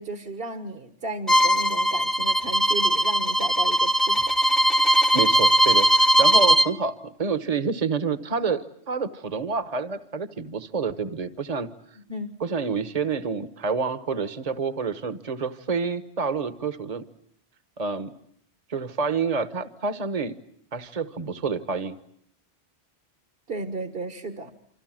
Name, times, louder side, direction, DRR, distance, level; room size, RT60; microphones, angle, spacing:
voice 1, 0.0-4.3 6.3-6.4 12.1-12.3 23.5-24.5, right 2 dB, 60° right, 8 dB, 1.7 m, -34 dB
Bowed string instrument, 1.3-6.7, right 1 dB, ahead, 0.9 m, -20 dB
voice 2, 5.1-11.7 12.4-17.0 17.8-18.1 18.7-20.3 20.7-22.0, right 5 dB, 35° right, 12 dB, 1.3 m, -28 dB
28.5 x 26.0 x 7.6 m, 0.70 s
omnidirectional pair, 1.1 m